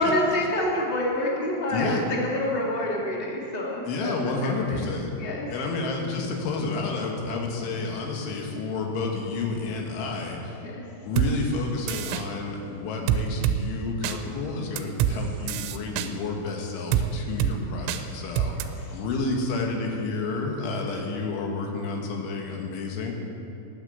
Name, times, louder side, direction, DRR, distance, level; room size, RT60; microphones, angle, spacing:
voice 1, 0.0-4.1 4.4-4.9 5.2-5.5 10.6-10.8 18.5-18.6, left 1 dB, 45° left, -3 dB, 0.7 m, -27 dB
voice 2, 1.7-2.0 3.8-5.1 5.5-10.7 11.0-18.6 18.9-23.1, left 3 dB, 75° left, 0 dB, 4.0 m, -30 dB
sound 1, 11.2-11.3 11.9-12.2 13.1-13.6 14.0-14.2 14.8-15.2 15.5-16.1 16.9-17.1 17.4-17.5 17.9-18.0 18.4-18.6, right 10 dB, 90° right, 3.2 m, -24 dB
19.0 x 8.6 x 8.0 m, 2.6 s
omnidirectional pair, 5.6 m